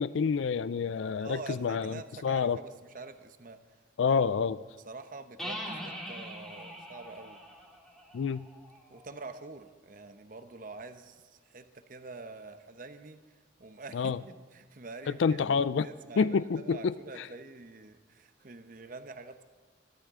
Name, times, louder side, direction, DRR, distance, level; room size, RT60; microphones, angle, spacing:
voice 1, 0.0-2.6 4.0-4.6 8.1-8.4 13.9-14.2 15.2-15.9 16.2-17.3, left 5 dB, 85° left, 17 dB, 0.4 m, -28 dB
voice 2, 1.1-3.6 4.0-4.1 4.8-7.4 8.9-13.2 13.6-14.1 14.5-19.4, right 3 dB, 45° right, 9 dB, 0.9 m, -46 dB
sound 1, 5.4-9.0, equal, 5° left, 2.2 m, -42 dB
23.5 x 12.0 x 3.7 m, 1.4 s
head